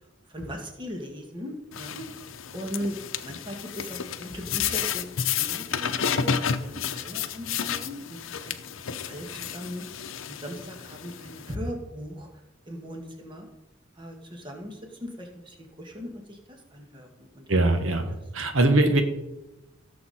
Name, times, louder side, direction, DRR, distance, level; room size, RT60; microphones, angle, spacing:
voice 1, 0.3-2.1 2.5-2.9 3.2-5.1 5.4-6.3 6.6-8.6 9.1-9.8 10.2-12.3 12.7-13.5 14.0-17.4, equal, 25° right, 2 dB, 1.9 m, -38 dB
sound 1, 1.7-11.5, left 7 dB, 85° left, 0.7 m, -31 dB
voice 2, 17.5-19.0, right 2 dB, 85° right, 6 dB, 1.3 m, -22 dB
16.5 x 7.1 x 4.3 m, 0.96 s
head